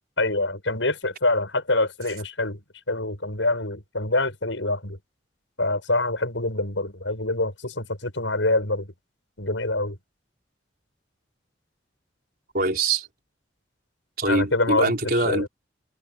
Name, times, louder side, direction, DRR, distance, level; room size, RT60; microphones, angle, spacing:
voice 1, 0.2-2.6 2.9-5.0 5.6-8.9 9.4-10.0 14.3-15.5, left 2 dB, 85° left, 7.7 m, -25 dB
voice 2, 12.5-13.1 14.2-15.5, right 2 dB, 50° right, 5.0 m, -23 dB
head